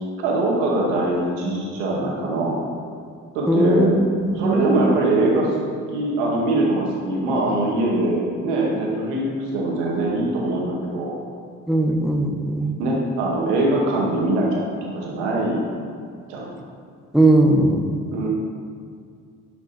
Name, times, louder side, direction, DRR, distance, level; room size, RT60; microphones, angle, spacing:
voice 1, 0.2-2.6 3.3-4.0 4.3-5.5 5.9-11.1 12.8-14.7 14.9-15.7 16.3-16.5 18.1-18.3, right 2 dB, 90° right, -3 dB, 2.2 m, -22 dB
voice 2, 3.5-4.9 11.7-12.7 17.1-17.9, right 1 dB, ahead, 2 dB, 1.5 m, -19 dB
11.5 x 5.8 x 4.4 m, 2.2 s
hypercardioid pair, 50°, 35 cm